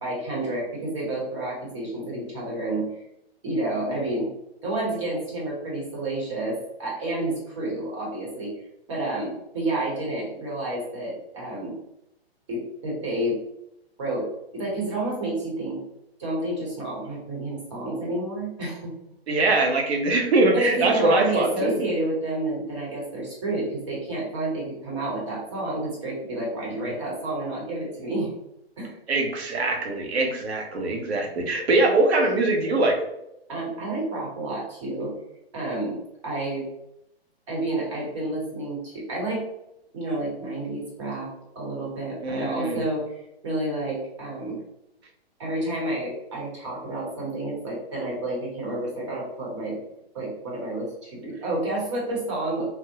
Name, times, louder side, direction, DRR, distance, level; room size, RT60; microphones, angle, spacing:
voice 1, 0.0-2.9 3.4-4.3 4.6-8.5 8.9-11.8 12.5-13.4 14.0-14.3 14.5-15.8 16.2-18.9 20.5-28.3 28.8-28.9 33.5-35.1 35.5-36.7 37.5-39.4 39.9-41.3 41.5-43.1 43.4-44.6 45.4-49.8 50.1-52.8, right 1 dB, 30° right, -4 dB, 1.0 m, -30 dB
voice 2, 19.3-21.8 26.8-26.9 29.1-33.0 42.2-42.9, right 2 dB, 80° right, 2 dB, 0.9 m, -22 dB
3.5 x 2.1 x 2.7 m, 0.83 s
hypercardioid pair, 175°, 31 cm